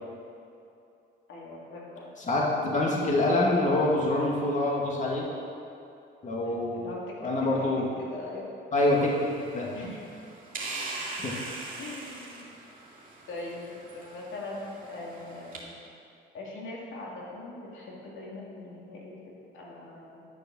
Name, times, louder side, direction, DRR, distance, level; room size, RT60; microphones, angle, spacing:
voice 1, 1.3-2.1 6.4-7.0 8.0-8.5 9.7-10.0 11.8-12.5 13.3-15.8 16.3-20.3, left 2 dB, 75° left, -3 dB, 2.4 m, -41 dB
voice 2, 2.2-5.3 6.2-6.9 7.2-7.9 8.7-9.3 9.5-9.7 11.2-11.3, left 2 dB, 40° left, -3 dB, 2.1 m, -25 dB
sound 1, 8.8-15.6, right 3 dB, 45° right, 2.6 m, -41 dB
11.5 x 6.9 x 6.3 m, 2.6 s
cardioid pair, 90°, 20 cm